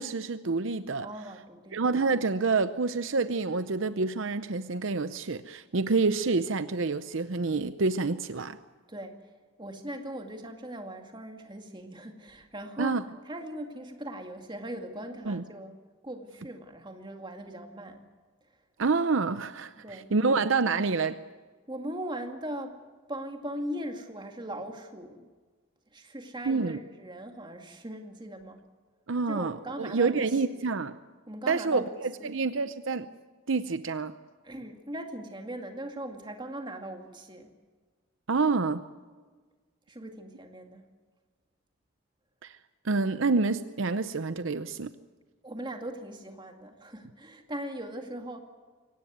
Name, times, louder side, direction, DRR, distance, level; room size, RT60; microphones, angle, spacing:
voice 1, 0.0-1.1 1.7-8.6 12.8-13.0 15.3-15.4 18.8-21.2 26.5-26.8 29.1-30.9 31.5-33.1 33.5-34.1 38.3-38.8 42.4-42.6 42.8-44.9, right 4 dB, 65° right, 12 dB, 0.7 m, -28 dB
voice 2, 1.0-1.8 8.9-9.2 9.6-15.8 16.0-18.0 19.8-20.3 21.7-22.8 23.1-25.3 25.9-28.6 29.3-30.6 31.3-32.4 34.4-37.5 39.9-40.8 45.4-48.4, right 1 dB, 20° right, 4 dB, 2.1 m, -39 dB
23.5 x 18.0 x 9.4 m, 1.4 s
head